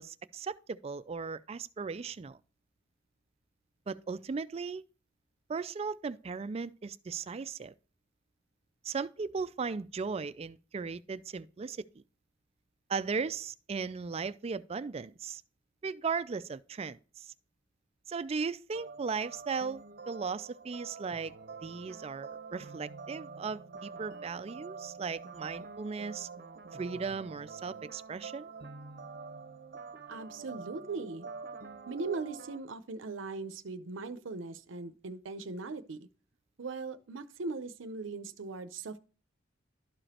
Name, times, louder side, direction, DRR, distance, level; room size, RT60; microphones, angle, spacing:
voice 1, 0.0-2.4 3.9-4.8 5.5-7.7 8.8-11.8 12.9-15.4 15.8-17.3 18.1-21.3 21.6-26.3 26.8-28.5, right 5 dB, 30° right, 0.3 m, -37 dB
sound 1, 18.7-32.6, right 4 dB, 50° right, 0.7 m, -46 dB
voice 2, 30.1-31.3 31.9-36.1 36.6-39.0, right 3 dB, 90° right, 0.6 m, -39 dB
12.0 x 5.0 x 2.9 m
head